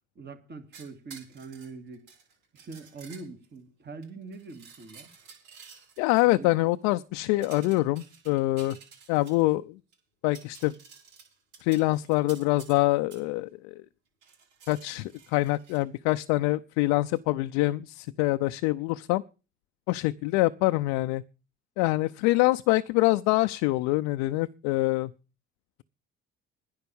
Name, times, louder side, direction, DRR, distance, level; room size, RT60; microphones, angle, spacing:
voice 1, 0.2-2.1 2.5-5.1 6.2-6.5, right 4 dB, 35° right, 2.5 m, -43 dB
Scraping a Soda Can, 0.7-3.6 4.0-6.2 7.4-9.5 9.9-10.0 10.2-12.8 13.1-13.2 14.2-15.8 17.1-17.2, right 6 dB, 85° right, 6.0 m, -52 dB
voice 2, 6.0-8.8 9.1-9.8 10.2-10.7 11.6-13.7 14.7-19.2 19.9-21.2 21.8-25.1, left 19 dB, 80° left, 0.6 m, -25 dB
10.5 x 9.4 x 7.0 m
supercardioid pair, 75°, 29 cm